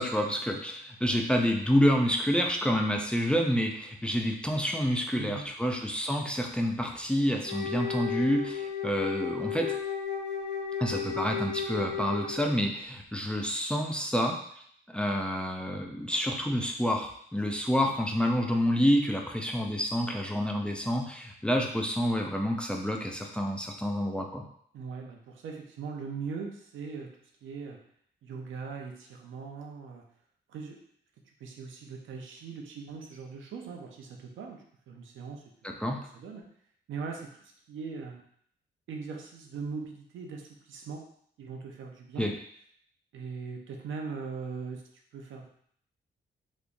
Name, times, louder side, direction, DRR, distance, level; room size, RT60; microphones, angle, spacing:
voice 1, 0.0-9.7 10.8-14.4 14.9-24.4 35.6-36.0 42.2-42.3, equal, 5° left, 1 dB, 0.4 m, -28 dB
voice 2, 5.1-5.5 24.7-27.1 27.4-27.8 28.2-30.0 30.5-30.8 31.4-35.4 35.7-35.8 36.1-36.4 36.9-38.2 38.9-41.0 41.4-42.3 43.1-44.8 45.1-45.5, right 5 dB, 90° right, 2 dB, 0.6 m, -40 dB
Wind instrument woodwind instrument, 7.4-12.6, left 6 dB, 70° left, 1.1 m, -34 dB
3.5 x 3.0 x 2.5 m, 0.65 s
cardioid pair, 120°, 20 cm